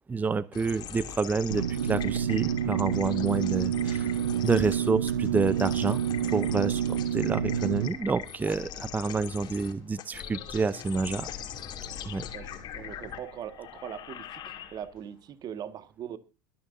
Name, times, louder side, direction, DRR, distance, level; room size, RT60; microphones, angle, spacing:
voice 1, 0.1-4.1 4.4-6.0 6.3-11.3 12.1-12.2, right 4 dB, 15° right, 17 dB, 0.7 m, -28 dB
sound 1, 0.5-15.1, left 9 dB, 45° left, 2.8 m, -42 dB
sound 2, 1.5-7.9, right 9 dB, 85° right, 0.9 m, -28 dB
voice 2, 12.3-16.2, right 9 dB, 40° right, 12 dB, 1.7 m, -41 dB
22.5 x 9.8 x 2.7 m, 0.29 s
hypercardioid pair, 85°, 10 cm